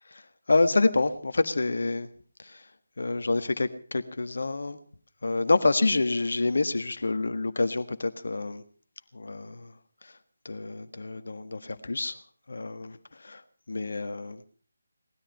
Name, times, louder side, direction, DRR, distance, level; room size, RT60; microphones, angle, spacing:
voice 1, 0.5-2.1 2.4-2.6 3.0-4.8 5.2-8.6 9.1-9.7 10.4-12.2 12.5-13.4 13.7-14.4, left 3 dB, 55° left, 10 dB, 1.6 m, -27 dB
19.0 x 13.0 x 5.5 m, 0.44 s
figure-of-eight pair, 155°, 0 cm